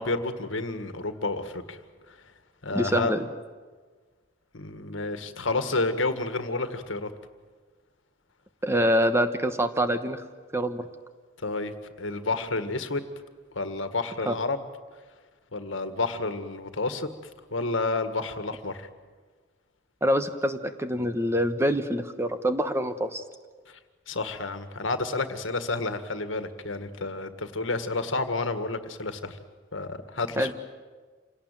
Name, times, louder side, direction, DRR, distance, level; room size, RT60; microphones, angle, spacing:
voice 1, 0.0-1.8 2.1-2.2 2.6-3.1 4.5-7.1 11.4-13.0 13.5-14.6 15.5-17.1 17.5-18.9 23.7-23.8 24.1-29.4 29.7-30.5, left 3 dB, 85° left, 9 dB, 1.8 m, -30 dB
voice 2, 2.7-3.3 8.6-10.2 10.5-10.8 14.3-14.4 20.0-23.2 30.4-30.5, equal, 15° right, 9 dB, 1.1 m, -25 dB
27.0 x 18.0 x 9.1 m, 1.5 s
head